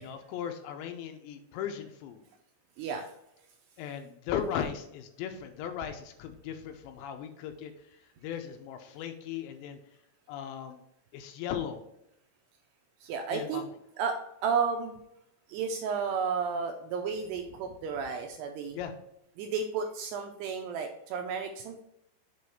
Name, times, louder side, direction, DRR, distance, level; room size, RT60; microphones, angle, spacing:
voice 1, 0.0-2.2 3.8-7.7 8.2-9.8 10.3-10.8 11.1-11.8 13.3-13.7 18.7-18.9, left 8 dB, 85° left, 6 dB, 2.8 m, -37 dB
voice 2, 13.0-13.6 14.0-14.2 14.4-15.0 15.5-18.8 19.4-21.8, right 6 dB, 85° right, 4 dB, 2.4 m, -32 dB
7.5 x 3.1 x 5.6 m, 0.78 s
omnidirectional pair, 5.3 m